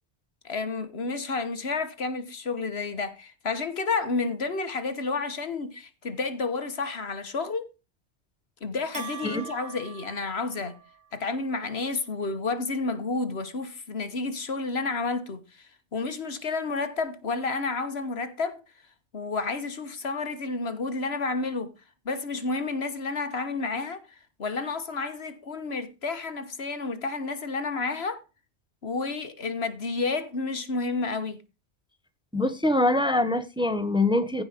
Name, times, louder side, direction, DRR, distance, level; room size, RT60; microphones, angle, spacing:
voice 1, 0.4-7.7 8.6-10.8 11.1-18.6 19.1-21.7 22.0-24.0 24.4-28.2 28.8-31.4, left 3 dB, 65° left, 1.6 m, -30 dB
Bell, 8.9-11.1, right 6 dB, 85° right, 2.1 m, -42 dB
voice 2, 32.3-34.4, left 2 dB, 5° right, 1.2 m, -24 dB
15.5 x 5.3 x 5.1 m
omnidirectional pair, 1.1 m